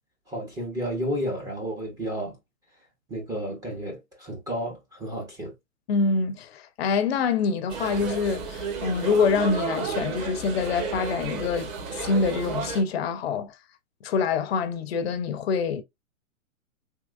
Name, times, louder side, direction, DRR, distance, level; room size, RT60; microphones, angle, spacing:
voice 1, 0.3-2.4 3.1-5.5, equal, 10° right, 0.5 m, -32 dB
voice 2, 5.9-11.7 12.0-13.6 14.0-15.8, left 5 dB, 45° left, 0.6 m, -25 dB
sound 1, 7.7-12.8, right 5 dB, 30° right, 1.0 m, -32 dB
3.6 x 2.8 x 2.3 m
hypercardioid pair, 135°, 42 cm